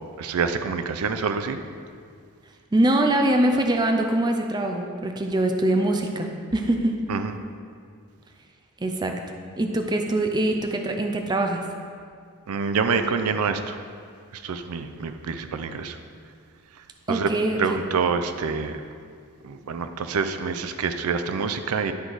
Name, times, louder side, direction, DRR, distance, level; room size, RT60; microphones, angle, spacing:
voice 1, 0.2-1.6 7.1-7.3 12.5-13.8 14.3-16.0 17.1-17.3 17.6-18.8 19.4-21.9, right 5 dB, 80° right, 8 dB, 0.4 m, -26 dB
voice 2, 2.7-7.0 8.8-9.2 9.6-11.6 17.1-17.8, right 1 dB, 20° right, 4 dB, 0.5 m, -23 dB
10.5 x 4.7 x 3.9 m, 2.2 s
head